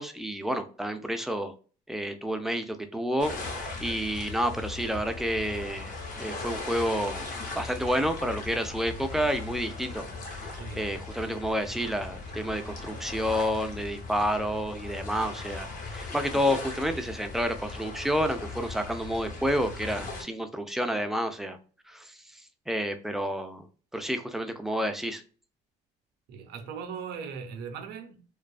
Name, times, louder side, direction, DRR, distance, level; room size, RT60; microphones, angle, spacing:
voice 1, 0.0-1.5 1.9-7.3 7.5-21.6 21.9-22.4 22.7-23.7 23.9-25.2, equal, ahead, 0.3 m, -30 dB
sound 1, 3.2-20.2, left 3 dB, 50° left, 1.0 m, -38 dB
voice 2, 10.5-10.9 26.3-28.2, right 6 dB, 80° right, 0.6 m, -39 dB
2.4 x 2.3 x 2.3 m
cardioid pair, 110°, 17 cm